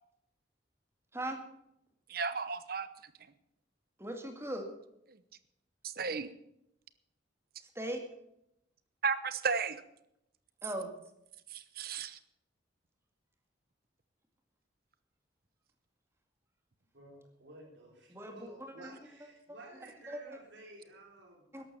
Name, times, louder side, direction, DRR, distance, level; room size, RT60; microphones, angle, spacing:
voice 1, 2.1-2.9 5.8-6.3 9.0-9.8 11.5-12.2, right 5 dB, 50° right, 13 dB, 1.0 m, -34 dB
voice 2, 4.0-4.7 7.8-8.0 10.6-10.9 18.1-18.4 20.1-20.2 21.5-21.6, right 1 dB, 15° right, 4 dB, 2.2 m, -38 dB
voice 3, 16.9-21.5, right 1 dB, 80° right, -2 dB, 4.1 m, -53 dB
13.5 x 11.5 x 7.0 m, 0.79 s
head